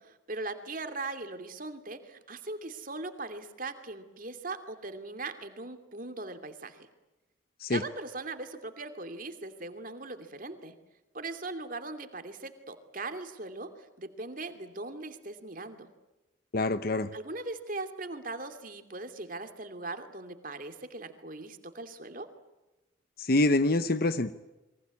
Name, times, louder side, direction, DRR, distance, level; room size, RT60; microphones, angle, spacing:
voice 1, 0.0-6.9 7.7-10.8 11.1-15.9 17.1-22.3, right 3 dB, 45° right, 8 dB, 2.7 m, -40 dB
voice 2, 16.5-17.1 23.2-24.3, left 2 dB, 50° left, 12 dB, 0.9 m, -26 dB
29.5 x 23.5 x 8.4 m, 1.1 s
head